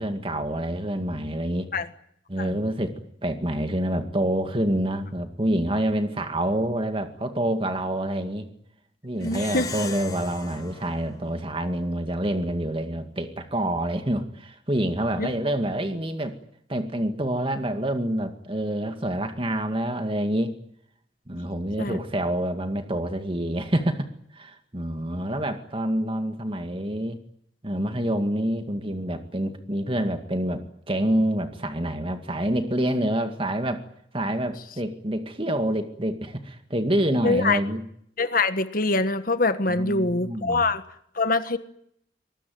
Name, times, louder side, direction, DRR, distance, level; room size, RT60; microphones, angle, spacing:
voice 1, 0.0-1.7 2.3-3.0 3.2-8.5 9.0-16.3 16.7-20.5 21.3-27.2 27.6-33.8 34.1-37.8 39.7-40.7, right 1 dB, 30° right, 7 dB, 2.1 m, -27 dB
voice 2, 9.2-9.6 15.2-15.3 21.8-22.0 37.2-37.6 38.2-40.8 41.1-41.6, left 3 dB, 45° left, 10 dB, 1.5 m, -24 dB
Plucked string instrument, 9.2-12.0, left 4 dB, 20° left, 1.9 m, -39 dB
24.5 x 20.5 x 9.4 m, 0.70 s
head